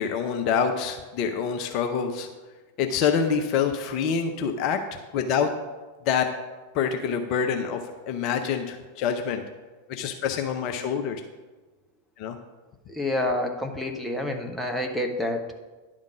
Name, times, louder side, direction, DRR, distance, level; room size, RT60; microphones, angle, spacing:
voice 1, 0.0-2.3 2.8-4.8 5.1-5.5 6.1-6.3 6.7-7.8 8.1-9.4 9.9-11.2 12.2-12.4, left 7 dB, 40° left, 6 dB, 0.6 m, -26 dB
voice 2, 12.9-15.6, left 1 dB, ahead, 1 dB, 0.9 m, -28 dB
10.5 x 3.7 x 6.1 m, 1.2 s
figure-of-eight pair, 90°, 0 cm